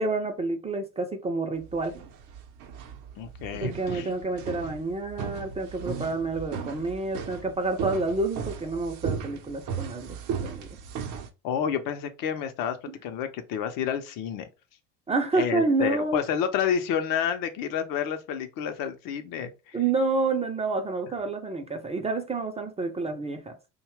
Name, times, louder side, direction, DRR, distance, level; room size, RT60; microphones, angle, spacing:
voice 1, 0.0-2.0 3.5-10.2 10.4-10.7 12.9-13.0 15.1-16.2 19.7-23.5, right 3 dB, 15° right, 0.4 m, -28 dB
sound 1, 1.6-11.3, right 6 dB, 55° right, 0.7 m, -36 dB
voice 2, 3.2-4.1 11.4-12.8 13.0-14.5 15.3-19.8, left 8 dB, 60° left, 0.6 m, -29 dB
2.7 x 2.2 x 3.1 m
supercardioid pair, 85°, 37 cm